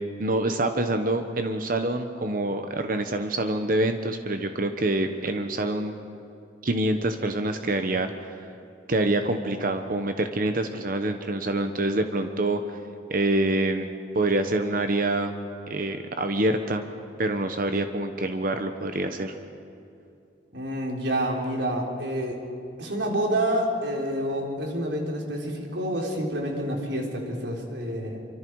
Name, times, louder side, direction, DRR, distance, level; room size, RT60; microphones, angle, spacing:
voice 1, 0.2-5.9 6.6-8.3 8.9-12.8 13.1-13.9 14.1-15.3 15.7-16.8 17.2-19.3, right 2 dB, 50° right, 7 dB, 1.0 m, -26 dB
voice 2, 20.5-22.4 22.8-28.2, right 1 dB, 85° right, 0 dB, 3.8 m, -28 dB
26.5 x 24.5 x 4.7 m, 2.7 s
head